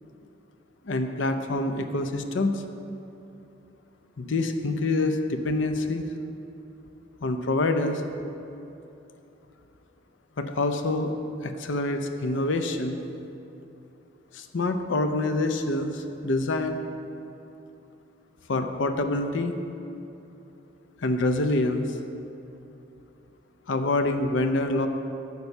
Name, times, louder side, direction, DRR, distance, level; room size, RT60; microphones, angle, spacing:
voice 1, 0.9-2.6 4.2-6.0 7.2-8.0 10.4-11.1 11.4-13.0 14.3-16.8 18.5-19.6 21.0-21.9 23.7-24.9, left 2 dB, 75° left, 7 dB, 0.6 m, -26 dB
9.4 x 6.7 x 5.4 m, 2.8 s
head